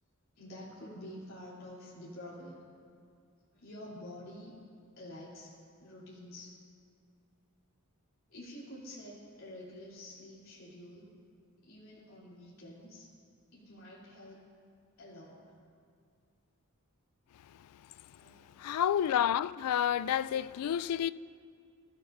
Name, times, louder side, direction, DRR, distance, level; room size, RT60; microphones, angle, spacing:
voice 1, 0.3-2.6 3.5-4.6 4.9-5.5 5.8-6.5 8.3-11.1 11.6-13.1 13.5-14.5 15.0-15.4 18.2-18.6, left 1 dB, 65° left, 3.1 m, -48 dB
voice 2, 18.6-21.1, left 9 dB, 85° left, 0.3 m, -29 dB
22.5 x 13.5 x 2.6 m
head